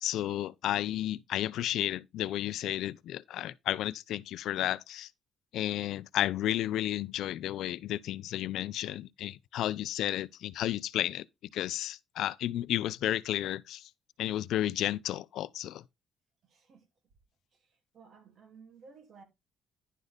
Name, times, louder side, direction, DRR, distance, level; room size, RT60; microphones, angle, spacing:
voice 1, 0.0-5.1 5.5-11.3 11.5-13.9 14.2-15.8, left 13 dB, 80° left, 0.5 m, -32 dB
voice 2, 16.5-16.8 17.9-19.2, right 5 dB, 60° right, 2.6 m, -55 dB
11.0 x 4.0 x 5.0 m
cardioid pair, 90°, 0 cm